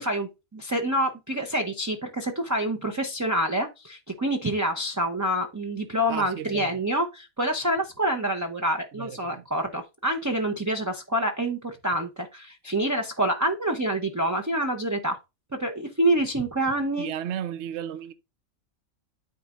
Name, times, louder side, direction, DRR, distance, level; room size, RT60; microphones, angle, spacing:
voice 1, 0.0-15.2 15.6-17.1, right 1 dB, 20° right, 0.5 m, -27 dB
voice 2, 6.1-6.8 9.0-9.4 17.0-18.1, right 10 dB, 60° right, 0.9 m, -34 dB
12.5 x 4.3 x 2.5 m
omnidirectional pair, 1.4 m